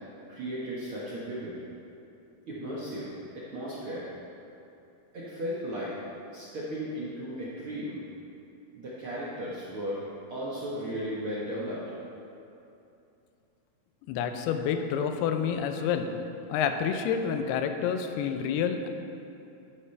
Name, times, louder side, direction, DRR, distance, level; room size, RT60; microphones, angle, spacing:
voice 1, 0.3-1.5 2.5-3.1 3.5-4.1 5.1-5.9 6.3-8.0 8.7-10.0 10.3-11.8, equal, 65° right, -8 dB, 1.3 m, -35 dB
voice 2, 14.1-16.2 16.5-18.9, left 7 dB, 85° left, 6 dB, 2.7 m, -28 dB
12.0 x 9.9 x 3.4 m, 2.8 s
omnidirectional pair, 4.5 m